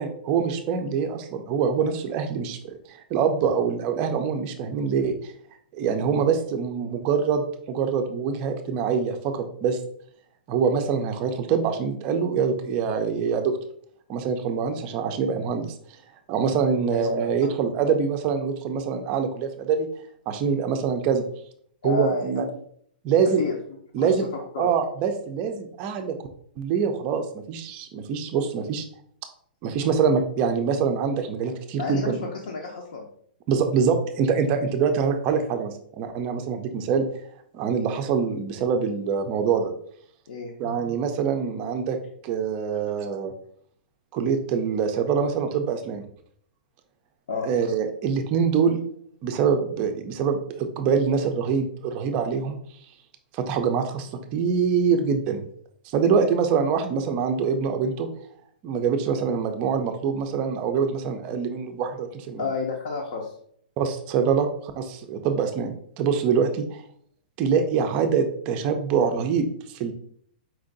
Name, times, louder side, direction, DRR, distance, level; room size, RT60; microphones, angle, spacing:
voice 1, 0.0-5.3 5.7-9.8 10.5-13.6 14.1-15.7 16.3-19.9 20.3-21.2 21.8-22.5 23.0-23.4 23.9-24.3 24.6-26.2 26.6-28.8 29.6-32.2 33.5-37.1 37.5-39.7 40.6-42.0 42.2-43.3 44.1-46.0 47.4-48.8 49.2-52.6 53.3-55.5 55.9-58.1 58.6-62.5 63.8-64.5 64.8-66.8 67.4-69.9, right 6 dB, 25° right, 6 dB, 0.4 m, -24 dB
voice 2, 21.8-22.4 23.4-23.6 24.0-24.3 24.5-24.7 31.7-32.2 32.5-33.0 40.3-40.8 42.9-43.1 47.3-47.5 62.4-63.3, left 4 dB, 60° left, -1 dB, 0.7 m, -30 dB
4.4 x 2.5 x 3.8 m, 0.64 s
hypercardioid pair, 170°, 5 cm